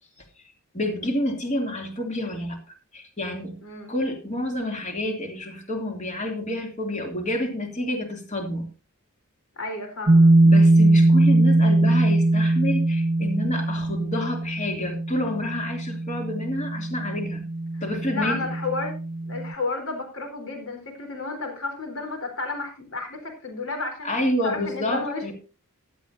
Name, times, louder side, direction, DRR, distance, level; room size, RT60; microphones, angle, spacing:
voice 1, 0.7-3.6 3.9-8.7 10.4-17.5 17.8-18.5 24.0-25.3, left 1 dB, 35° left, 3 dB, 2.8 m, -29 dB
voice 2, 3.6-3.9 9.6-10.3 18.1-19.0 19.3-24.1 24.4-25.3, left 3 dB, 60° left, 4 dB, 4.0 m, -32 dB
sound 1, 10.1-19.5, right 2 dB, 40° right, 0.7 m, -21 dB
15.5 x 11.5 x 2.7 m, 0.33 s
head